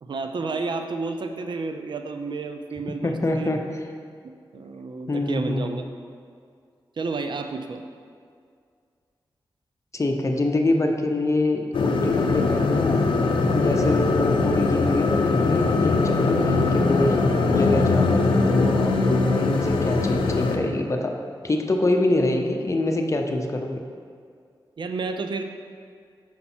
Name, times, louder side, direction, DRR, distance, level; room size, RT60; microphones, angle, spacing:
voice 1, 0.0-3.5 4.5-5.9 7.0-7.9 24.8-25.4, right 4 dB, 65° right, 6 dB, 0.5 m, -31 dB
voice 2, 3.0-3.6 5.1-5.8 9.9-13.0 13.5-21.1 21.4-23.8, left 2 dB, 35° left, 3 dB, 0.7 m, -25 dB
sound 1, 11.7-20.6, left 3 dB, 90° left, 0.5 m, -21 dB
5.9 x 5.3 x 4.3 m, 2.2 s
cardioid pair, 60°, 9 cm